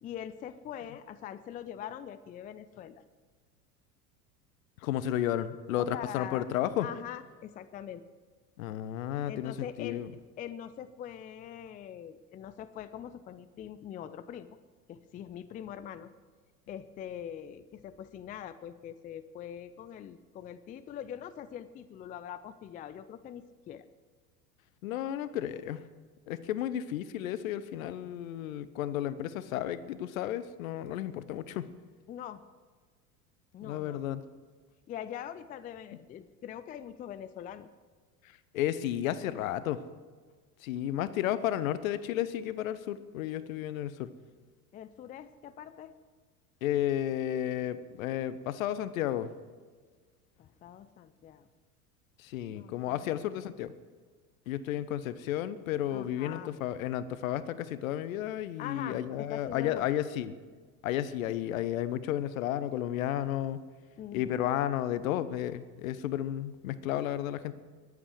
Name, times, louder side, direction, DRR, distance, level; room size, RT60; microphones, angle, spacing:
voice 1, 0.0-3.0 5.8-6.5 6.8-8.0 9.3-10.1 10.4-14.6 14.9-16.1 16.7-23.9 32.1-32.4 33.5-34.0 34.9-37.7 44.7-45.9 50.4-51.5 52.5-53.3 55.9-56.5 58.6-59.9 64.0-64.4, left 10 dB, 20° left, 13 dB, 0.4 m, -43 dB
voice 2, 4.8-6.9 8.6-10.1 24.8-25.8 26.3-31.7 33.6-34.2 38.2-39.8 40.6-44.1 46.6-49.3 52.2-53.7 54.5-60.3 60.8-63.6 64.1-67.5, left 11 dB, 60° left, 15 dB, 0.9 m, -32 dB
21.0 x 8.3 x 4.7 m, 1.5 s
figure-of-eight pair, 75°, 46 cm